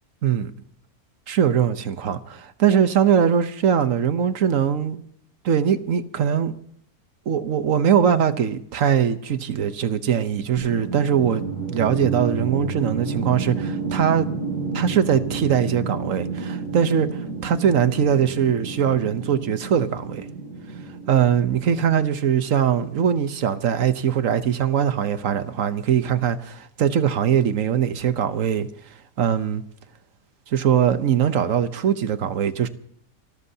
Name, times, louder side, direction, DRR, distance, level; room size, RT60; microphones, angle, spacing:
voice 1, 1.3-5.0 5.4-6.6 7.3-11.4 11.7-14.3 14.7-20.3 21.1-28.7 29.2-29.6 30.5-32.7, right 8 dB, 60° right, 1.2 m, -21 dB
sound 1, 10.6-22.7, right 4 dB, 30° left, 5.3 m, -31 dB
29.0 x 13.0 x 2.8 m
omnidirectional pair, 1.7 m